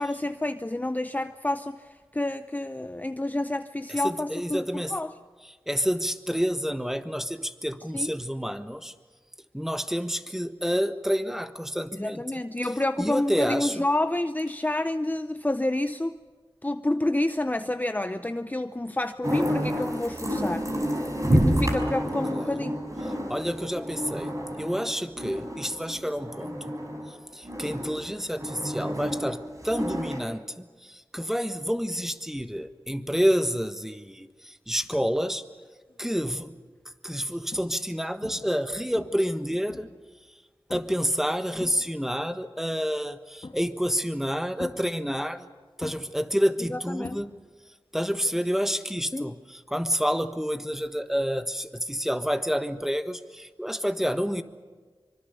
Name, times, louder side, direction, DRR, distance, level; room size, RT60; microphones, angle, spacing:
voice 1, 0.0-5.1 7.9-8.1 12.0-16.2 16.6-20.7 21.3-22.8 46.7-47.2 49.1-49.3, left 1 dB, 20° left, 0.6 m, -29 dB
voice 2, 3.9-4.9 5.4-8.9 9.5-12.4 13.0-13.8 22.3-22.7 23.0-24.3 24.6-26.7 27.1-35.4 36.0-36.5 36.8-39.9 40.7-45.5 45.8-47.3 47.9-54.4, equal, 5° right, 1.4 m, -29 dB
sound 1, 19.2-27.1 27.5-30.2, equal, 35° right, 4.8 m, -29 dB
sound 2, 35.9-36.2 36.8-36.9 37.5-37.9 38.2-38.6 39.0-40.1 40.7-41.1 41.4-42.2 43.4-43.9 44.6-45.5 45.8-47.7 48.0-48.4 50.4-50.5, left 2 dB, 60° left, 2.0 m, -43 dB
25.0 x 24.0 x 6.9 m
wide cardioid pair, 60°, 9 cm